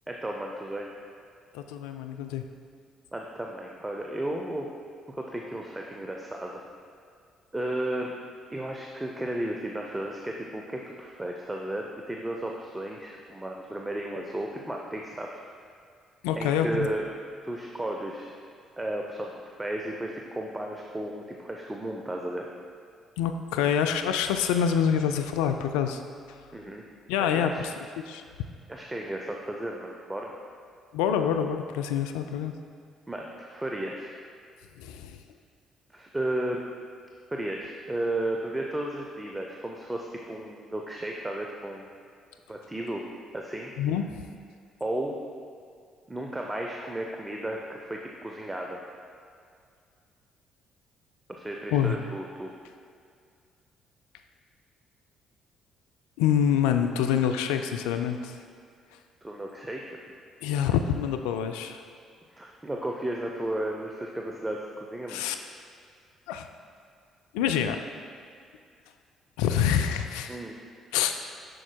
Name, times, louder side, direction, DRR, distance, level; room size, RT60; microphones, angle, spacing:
voice 1, 0.1-0.9 3.1-4.7 5.1-6.6 7.5-8.1 8.5-15.4 16.4-17.1 17.4-18.3 18.8-22.5 26.5-26.8 27.2-27.5 28.7-30.3 33.1-34.1 35.9-36.6 37.3-41.9 42.5-43.0 43.3-43.7 44.8-45.2 46.1-48.8 51.3-52.5 59.2-59.8 62.3-65.2 70.3-70.6, right 1 dB, 15° right, 0 dB, 0.6 m, -34 dB
voice 2, 1.5-2.4 16.2-16.9 23.2-26.0 27.1-27.7 28.0-28.2 30.9-32.5 34.8-35.2 43.8-44.3 51.7-52.0 56.2-58.4 60.4-61.8 65.1-65.4 66.3-66.5 67.3-67.8 69.4-70.4 70.9-71.2, left 8 dB, 75° left, 6 dB, 0.3 m, -26 dB
7.6 x 6.1 x 2.2 m, 2.2 s
hypercardioid pair, 50°, 0 cm